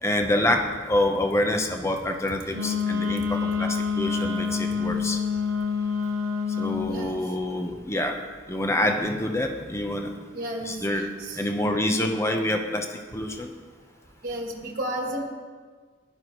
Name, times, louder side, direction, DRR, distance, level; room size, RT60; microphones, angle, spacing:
voice 1, 0.0-5.2 6.6-8.2 8.5-10.2 10.6-11.1 11.4-13.5, left 1 dB, 15° left, 3 dB, 0.9 m, -26 dB
Wind instrument woodwind instrument, 2.5-6.9, left 5 dB, 85° right, 0.9 m, -27 dB
voice 2, 6.9-7.2 10.3-11.4 11.7-12.0 14.2-15.2, right 1 dB, 45° right, 1 dB, 1.4 m, -33 dB
16.0 x 11.5 x 3.1 m, 1.5 s
head